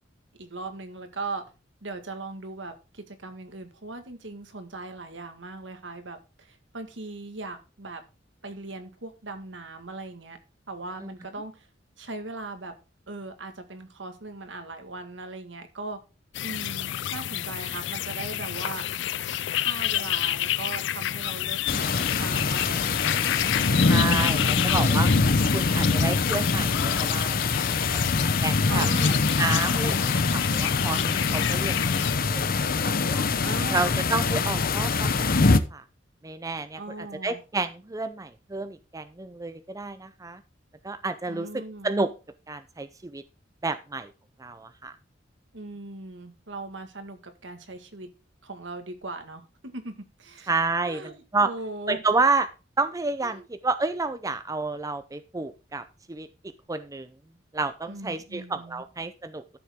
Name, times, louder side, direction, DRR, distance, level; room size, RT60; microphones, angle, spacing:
voice 1, 0.4-1.4 1.8-8.0 8.4-10.4 10.7-11.7 12.0-12.7 13.1-16.0 16.4-18.8 19.2-21.6 22.0-22.8 23.4-24.8 28.7-29.2 33.3-34.0 36.8-37.4 41.3-41.9 45.5-48.1 48.4-50.5 50.8-52.0 53.2-53.5 57.9-58.8, right 3 dB, 70° right, 7 dB, 1.8 m, -39 dB
sound 1, 16.3-32.2, left 12 dB, 65° left, 0.4 m, -30 dB
sound 2, 21.7-35.6, left 4 dB, 50° left, 0.8 m, -24 dB
voice 2, 23.9-25.1 25.5-28.0 28.4-28.9 29.4-32.4 32.8-33.2 33.7-35.8 36.2-36.8 37.2-40.4 40.8-41.5 41.8-42.1 42.5-43.2 43.6-44.1 44.4-44.9 50.5-51.5 51.9-52.5 52.8-56.3 56.7-57.1 57.5-59.4, right 3 dB, 20° right, 11 dB, 0.5 m, -30 dB
13.0 x 7.0 x 3.6 m, 0.31 s
head